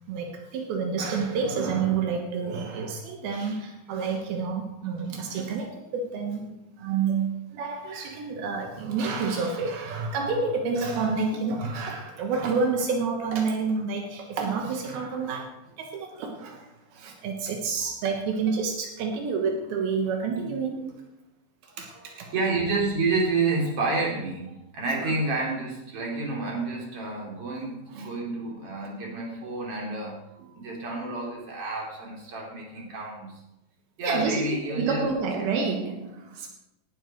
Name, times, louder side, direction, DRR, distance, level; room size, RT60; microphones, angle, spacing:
voice 1, 0.1-21.0 21.6-22.3 25.0-25.1 28.0-28.1 34.0-36.5, right 5 dB, 80° right, 2 dB, 3.2 m, -29 dB
voice 2, 21.7-33.4 34.0-35.1, right 3 dB, 40° right, -2 dB, 4.2 m, -30 dB
18.5 x 10.0 x 4.5 m, 0.91 s
omnidirectional pair, 4.3 m